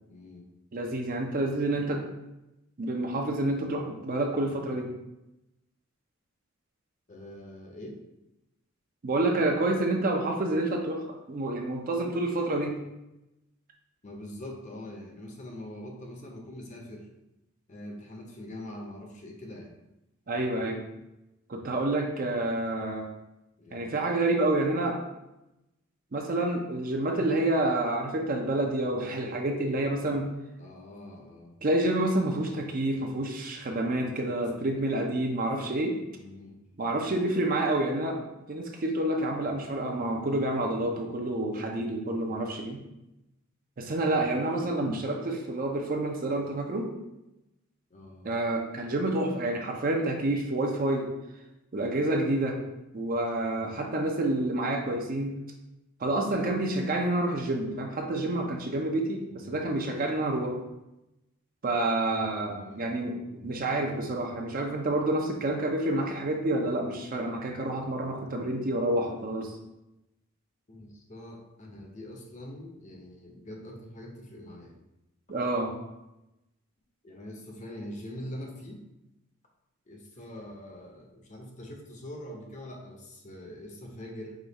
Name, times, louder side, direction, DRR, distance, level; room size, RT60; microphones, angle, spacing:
voice 1, 0.1-0.5 7.1-8.0 14.0-17.1 17.7-19.7 23.6-23.8 30.6-31.5 36.1-36.6 47.9-48.3 59.3-59.6 62.4-63.5 70.7-74.7 77.0-78.8 79.9-84.4, left 1 dB, 35° left, 1 dB, 0.7 m, -43 dB
voice 2, 0.7-2.0 2.8-4.9 9.0-12.8 20.3-20.8 21.5-23.1 23.7-25.0 26.1-30.3 31.6-36.0 36.8-38.2 38.5-42.8 43.8-46.9 48.2-51.1 51.7-52.6 52.9-55.4 56.0-60.6 61.6-69.5 75.3-75.7, right 2 dB, 40° right, 2 dB, 0.5 m, -28 dB
5.0 x 2.3 x 4.0 m, 0.94 s
head